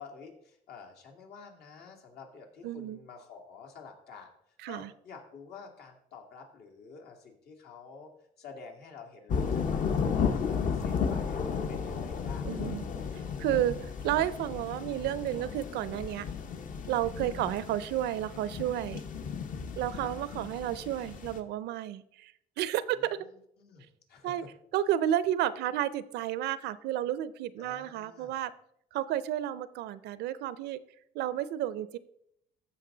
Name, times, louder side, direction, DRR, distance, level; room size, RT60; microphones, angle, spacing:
voice 1, 0.0-4.3 4.7-8.1 8.4-12.7 19.9-20.1 23.0-24.5 27.6-28.4, left 5 dB, 70° left, 2 dB, 2.4 m, -49 dB
voice 2, 2.6-3.0 4.6-4.9 12.4-12.8 13.4-16.3 16.9-19.0 19.7-23.2 24.2-24.4 24.7-28.5 28.9-30.8 31.1-32.0, right 12 dB, 80° right, 17 dB, 0.6 m, -31 dB
sound 1, 9.3-21.4, left 6 dB, 50° left, 1.0 m, -34 dB
14.5 x 5.3 x 3.9 m, 0.75 s
cardioid pair, 110°, 17 cm